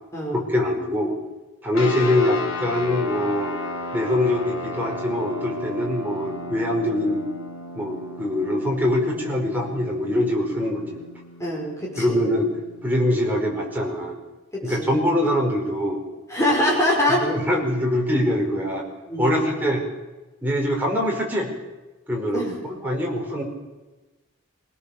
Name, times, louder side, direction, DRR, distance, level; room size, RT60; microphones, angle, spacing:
voice 1, 0.3-1.1 1.6-3.5 3.9-7.2 7.7-11.0 12.0-12.5 12.8-14.1 14.6-16.0 17.2-18.8 19.2-19.8 20.4-21.5 22.1-22.4 22.8-23.4, left 1 dB, 10° right, -2 dB, 5.0 m, -23 dB
sound 1, 1.7-13.6, left 1 dB, 90° left, 3.7 m, -34 dB
voice 2, 11.4-12.2 14.5-14.9 16.3-17.3 19.1-19.5 22.3-22.6, left 1 dB, 15° left, -4 dB, 5.4 m, -24 dB
24.5 x 17.5 x 7.2 m, 1.2 s
head